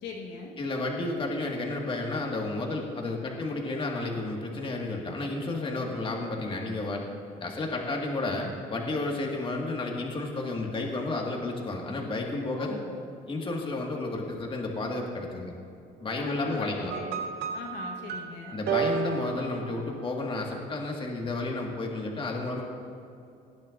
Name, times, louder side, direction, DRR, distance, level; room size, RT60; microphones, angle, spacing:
voice 1, 0.0-0.6 12.5-13.0 16.2-17.2 17.5-18.6, left 4 dB, 90° left, -1 dB, 1.4 m, -40 dB
voice 2, 0.6-7.0 7.4-12.8 13.3-15.5 16.0-16.9 18.5-22.6, left 2 dB, 30° left, 0 dB, 1.9 m, -32 dB
sound 1, 16.9-20.3, right 7 dB, 75° right, 0.9 m, -32 dB
18.0 x 10.5 x 2.6 m, 2.5 s
cardioid pair, 110°, 17 cm